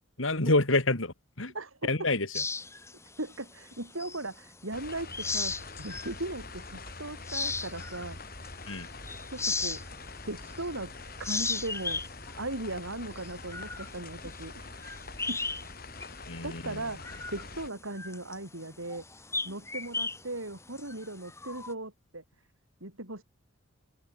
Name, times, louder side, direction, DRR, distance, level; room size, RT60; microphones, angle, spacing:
voice 1, 0.2-1.5 1.8-2.4 8.7-8.9 16.3-16.8, left 2 dB, 75° left, 3.3 m, -28 dB
voice 2, 1.5-2.1 3.2-8.2 9.3-9.8 10.3-10.9 11.2-12.0 12.3-14.7 15.3-15.4 16.4-19.0 19.4-22.2 22.8-23.2, right 2 dB, 80° right, 6.7 m, -38 dB
sound 1, 2.3-4.5 4.9-6.2 6.7-6.8 7.2-10.8 11.1-15.7 16.0-16.2 16.6-21.7, left 3 dB, 15° left, 7.5 m, -36 dB
sound 2, 4.7-17.7, left 3 dB, 45° left, 6.2 m, -45 dB
open air
head